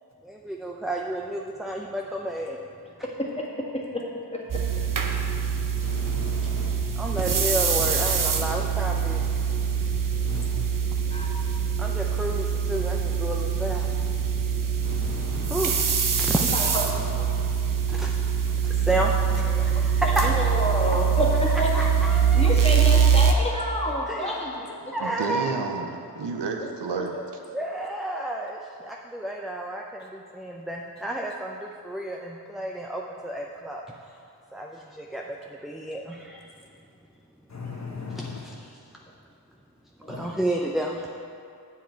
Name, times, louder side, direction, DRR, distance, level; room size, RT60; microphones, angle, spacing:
voice 1, 0.2-2.6 6.9-9.3 10.5-10.6 11.8-14.1 15.5-15.8 16.1-16.4 17.9-18.1 18.4-20.3 21.7-22.5 24.1-24.4 24.9-25.6 27.5-34.2 34.5-36.7 38.1-38.8 40.1-41.1, right 1 dB, ahead, -1 dB, 0.5 m, -31 dB
sound 1, 4.5-23.3, right 7 dB, 50° right, 0.7 m, -24 dB
voice 2, 5.8-6.7 10.3-10.4 14.8-15.8 37.5-38.4 40.1-40.3, left 4 dB, 40° left, 0 dB, 1.3 m, -37 dB
voice 3, 16.5-17.3 20.0-21.9 22.3-25.1 26.9-27.3 40.0-40.2, equal, 15° left, -4 dB, 1.7 m, -29 dB
voice 4, 25.0-27.2, right 4 dB, 80° right, 4 dB, 0.8 m, -31 dB
7.3 x 7.1 x 4.5 m, 2.5 s
cardioid pair, 45°, 41 cm